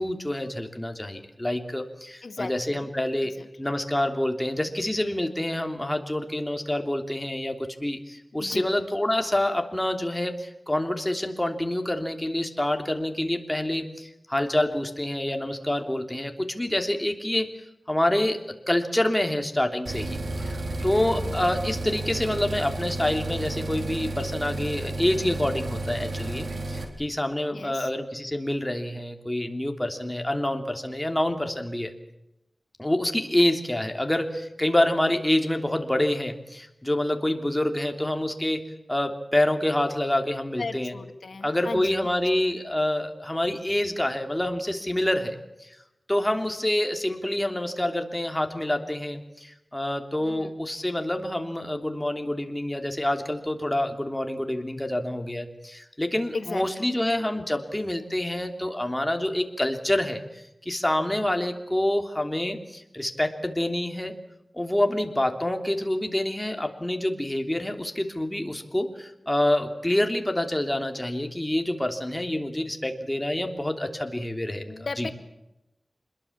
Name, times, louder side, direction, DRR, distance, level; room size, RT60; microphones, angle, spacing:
voice 1, 0.0-3.3 3.6-17.5 17.9-18.4 18.7-31.9 32.8-38.6 38.9-40.9 41.4-45.7 46.1-64.1 64.5-75.1, left 1 dB, 15° left, 5 dB, 3.2 m, -27 dB
voice 2, 2.2-2.8 3.2-3.5 8.4-8.7 21.1-21.4 27.5-27.9 40.6-42.2 50.2-50.5 56.3-56.9 74.7-75.1, left 3 dB, 80° left, 7 dB, 2.1 m, -36 dB
sound 1, 19.9-26.9, right 2 dB, 80° right, 4.0 m, -32 dB
26.5 x 21.5 x 7.4 m, 0.91 s
wide cardioid pair, 75°, 0 cm